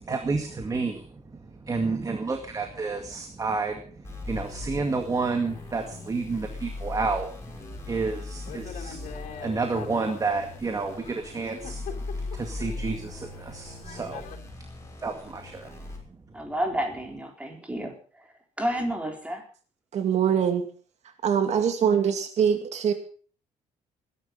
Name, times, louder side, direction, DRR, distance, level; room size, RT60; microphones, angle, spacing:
voice 1, 0.0-1.0 1.6-3.8 4.3-7.3 7.9-9.0 9.4-11.8 12.3-14.2 15.0-15.7, right 4 dB, 25° right, 5 dB, 2.1 m, -30 dB
sound 1, 4.0-16.0, left 3 dB, 20° left, 6.2 m, -39 dB
Thunder / Rain, 5.5-14.4, left 8 dB, 80° left, 3.8 m, -45 dB
voice 2, 16.3-19.4, equal, 10° right, 2 dB, 4.3 m, -31 dB
voice 3, 19.9-20.7 21.2-22.9, right 8 dB, 60° right, 6 dB, 2.4 m, -23 dB
20.5 x 11.0 x 5.4 m, 0.43 s
cardioid pair, 120°, 13 cm